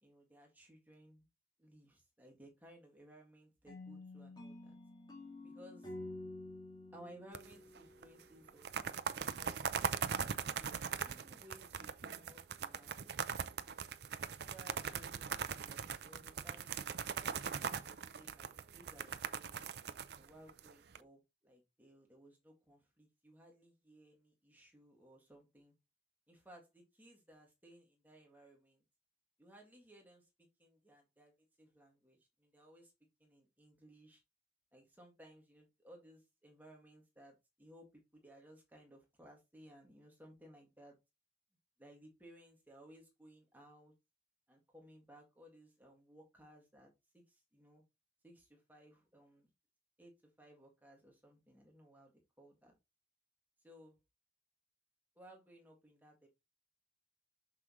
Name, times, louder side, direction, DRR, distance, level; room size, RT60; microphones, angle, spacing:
voice 1, 0.0-1.3 1.6-4.8 5.4-5.9 6.9-9.1 9.3-13.2 14.5-16.8 17.6-19.7 20.1-25.7 26.3-28.8 29.4-30.3 30.6-32.9 33.2-34.2 34.7-41.0 41.8-43.9 44.5-47.8 48.2-49.5 50.0-52.1 52.4-52.7 53.6-54.0 55.2-56.3, right 1 dB, 10° right, 1.9 m, -60 dB
sound 1, 3.7-8.6, left 2 dB, 25° left, 2.1 m, -50 dB
sound 2, 7.3-8.0 8.5-21.0, right 6 dB, 65° right, 0.5 m, -40 dB
6.3 x 5.6 x 3.1 m
head